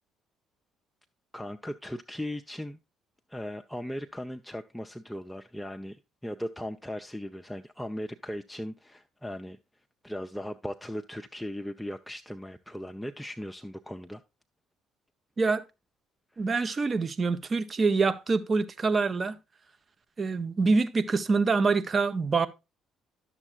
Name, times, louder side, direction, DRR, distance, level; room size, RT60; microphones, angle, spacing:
voice 1, 1.3-2.8 3.3-9.6 10.0-14.2 16.3-16.4, equal, 5° left, 0.5 m, -38 dB
voice 2, 16.4-19.4 20.2-22.5, right 4 dB, 35° right, 0.7 m, -25 dB
10.5 x 7.1 x 2.4 m
figure-of-eight pair, 50°, 0 cm